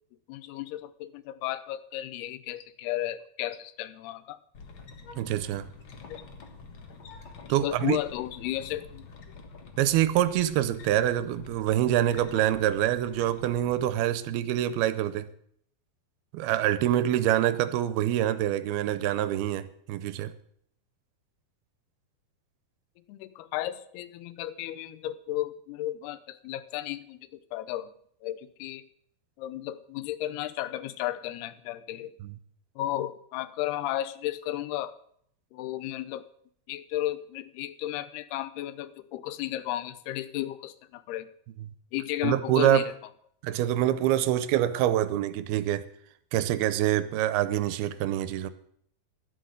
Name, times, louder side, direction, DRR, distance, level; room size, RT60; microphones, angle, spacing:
voice 1, 0.3-4.4 6.1-6.2 7.6-9.1 23.1-27.9 28.2-28.9 29.4-32.1 32.8-34.9 35.5-36.3 36.7-41.3 41.9-42.9, left 14 dB, 90° left, 15 dB, 2.8 m, -34 dB
sound 1, 4.5-14.0, left 4 dB, 70° left, 1.2 m, -47 dB
voice 2, 5.2-5.7 7.5-8.0 9.8-15.3 16.3-20.3 32.2-32.3 42.2-42.8 43.4-45.9 46.3-48.5, right 12 dB, 80° right, 14 dB, 2.6 m, -25 dB
12.0 x 11.0 x 6.5 m, 0.66 s
omnidirectional pair, 4.5 m